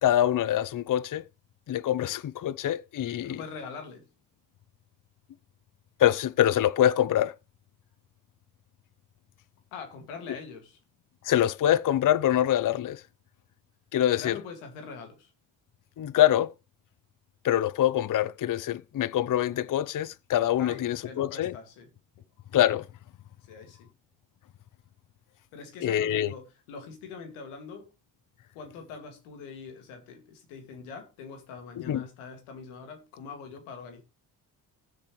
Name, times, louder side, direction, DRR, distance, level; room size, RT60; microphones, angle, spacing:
voice 1, 0.0-1.2 1.7-3.4 6.0-7.3 11.2-13.0 13.9-14.4 16.0-16.5 17.4-21.5 22.5-22.9 25.8-26.3 31.9-32.0, left 12 dB, 40° left, 0.6 m, -25 dB
voice 2, 3.2-4.1 9.7-10.8 14.1-15.3 20.6-21.9 23.5-23.9 25.5-27.9 28.5-34.0, left 5 dB, 85° left, 2.3 m, -43 dB
18.5 x 6.8 x 3.2 m
hypercardioid pair, 45°, 50 cm